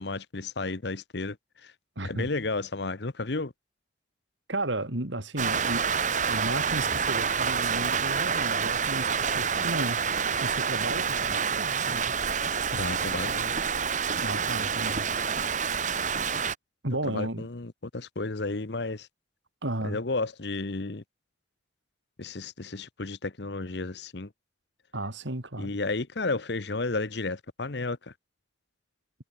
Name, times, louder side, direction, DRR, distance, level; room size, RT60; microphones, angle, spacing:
voice 1, 0.0-1.7 2.0-3.5 12.7-13.5 17.0-19.1 19.8-21.0 22.2-24.3 25.6-28.1, left 3 dB, 65° left, 1.1 m, -32 dB
voice 2, 2.0-2.3 4.5-5.9 6.3-10.0 10.4-12.1 14.2-15.1 16.8-17.4 19.6-20.0 24.9-25.7, right 1 dB, 80° right, 3.3 m, -34 dB
Rain, 5.4-16.5, right 6 dB, 40° right, 1.7 m, -28 dB
head